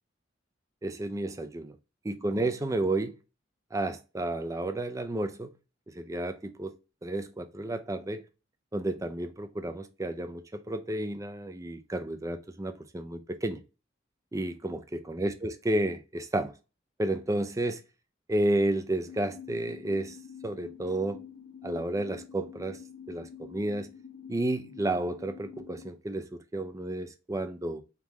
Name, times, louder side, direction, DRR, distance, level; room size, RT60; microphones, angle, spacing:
voice 1, 0.8-1.7 2.0-3.1 3.7-5.5 5.9-6.7 7.0-8.2 8.7-13.6 14.3-16.5 17.0-17.8 18.3-20.2 20.4-21.2 21.6-22.8 23.1-23.9 24.3-27.8, right 1 dB, 15° right, 0.5 m, -31 dB
sound 1, 19.0-25.9, left 8 dB, 70° left, 0.9 m, -47 dB
3.7 x 3.1 x 3.5 m
head